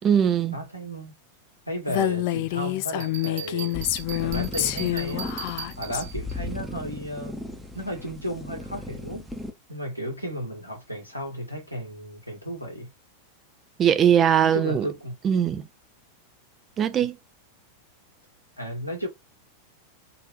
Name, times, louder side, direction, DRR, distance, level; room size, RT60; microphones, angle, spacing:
voice 1, 0.0-0.6 13.8-14.9 15.2-15.7 16.8-17.2, right 9 dB, 25° right, 0.5 m, -20 dB
voice 2, 0.5-1.2 1.7-3.8 4.2-5.3 5.8-9.3 9.7-12.9 14.4-15.1 17.0-17.1 18.6-19.1, equal, 90° left, 1.6 m, -34 dB
Female speech woman speaking, 1.9-6.0, left 16 dB, 45° left, 0.3 m, -27 dB
Bell, 3.0-6.3, right 10 dB, 55° right, 0.8 m, -38 dB
sound 1, 3.7-9.5, left 1 dB, 5° right, 0.9 m, -37 dB
3.8 x 2.7 x 3.1 m
figure-of-eight pair, 90°, 0 cm